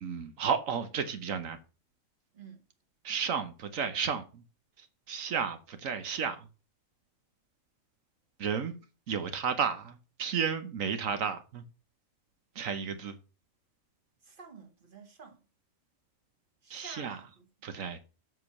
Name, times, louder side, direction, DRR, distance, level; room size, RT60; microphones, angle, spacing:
voice 1, 0.0-1.6 3.0-4.4 4.8-6.5 8.4-8.8 9.1-11.6 12.5-13.2 16.7-17.2 17.6-18.0, right 6 dB, 90° right, 1.4 m, -33 dB
voice 2, 14.2-15.4 16.6-17.5 17.7-18.0, right 5 dB, 40° right, 1.9 m, -50 dB
8.0 x 6.2 x 5.9 m
omnidirectional pair, 1.3 m